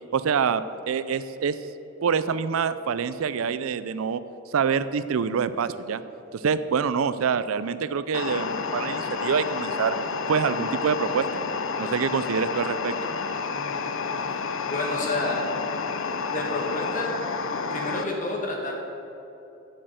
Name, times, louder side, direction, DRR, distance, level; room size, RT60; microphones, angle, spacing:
voice 1, 0.1-1.6 2.0-4.2 4.5-6.0 6.3-9.9 10.3-11.3 11.8-13.0, right 6 dB, 85° right, 14 dB, 0.4 m, -26 dB
sound 1, 8.1-18.0, left 5 dB, 70° left, 0.5 m, -30 dB
voice 2, 13.5-13.8 14.6-15.4 16.3-17.1 17.7-18.7, left 2 dB, 40° left, 0 dB, 1.7 m, -30 dB
7.5 x 6.6 x 8.0 m, 2.9 s
head